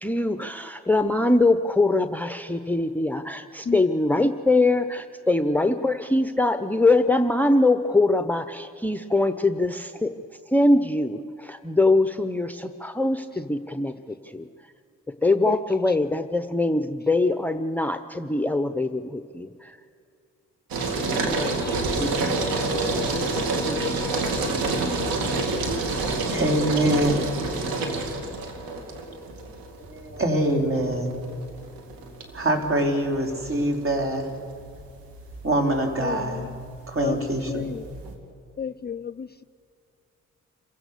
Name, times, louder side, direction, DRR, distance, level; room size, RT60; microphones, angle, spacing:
voice 1, 0.0-10.1 10.5-13.9 14.3-14.4 15.2-19.7 21.3-23.2 23.7-24.2, left 2 dB, 5° left, 9 dB, 0.8 m, -23 dB
voice 2, 4.1-4.7 7.9-8.0 13.3-13.4 15.4-16.0 21.4-21.8 24.0-24.1 36.0-36.6 37.0-37.9 38.6-39.4, left 7 dB, 30° left, 14 dB, 0.5 m, -34 dB
sound 1, 20.7-38.1, right 2 dB, 80° right, 2.6 m, -28 dB
voice 3, 26.0-27.3 29.2-29.3 29.9-31.1 32.3-34.2 35.4-36.4 36.9-37.6, right 1 dB, 40° right, 2 dB, 4.0 m, -24 dB
27.5 x 16.0 x 6.8 m, 2.5 s
supercardioid pair, 55°, 34 cm